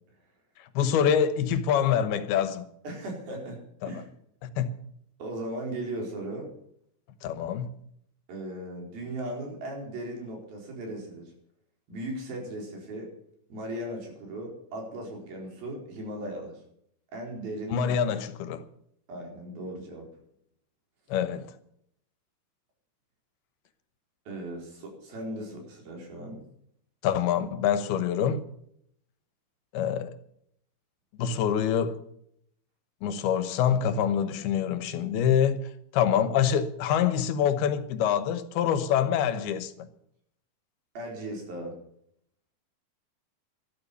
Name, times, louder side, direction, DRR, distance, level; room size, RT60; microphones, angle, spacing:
voice 1, 0.6-2.7 3.8-3.9 4.4-4.7 7.2-7.7 17.7-18.6 21.1-21.5 27.0-28.4 29.7-30.2 31.2-32.0 33.0-39.9, left 8 dB, 75° left, 2.9 m, -26 dB
voice 2, 2.8-4.1 5.2-6.5 8.3-11.3 11.9-13.1 13.5-16.6 17.1-18.0 19.1-20.1 24.3-26.4 40.9-41.7, right 1 dB, 65° right, 6.1 m, -37 dB
12.5 x 12.5 x 6.8 m
omnidirectional pair, 4.6 m